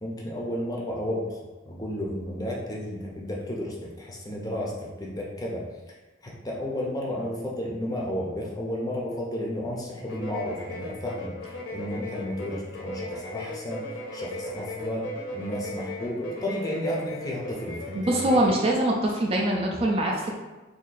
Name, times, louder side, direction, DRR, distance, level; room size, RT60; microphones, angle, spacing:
voice 1, 0.0-1.4 1.6-5.6 6.2-18.4, left 1 dB, 20° left, -3 dB, 0.6 m, -33 dB
sound 1, 10.0-18.6, left 1 dB, 75° left, 0.7 m, -37 dB
voice 2, 17.9-20.3, right 1 dB, 30° right, -1 dB, 0.4 m, -23 dB
2.7 x 2.6 x 4.0 m, 1.2 s
head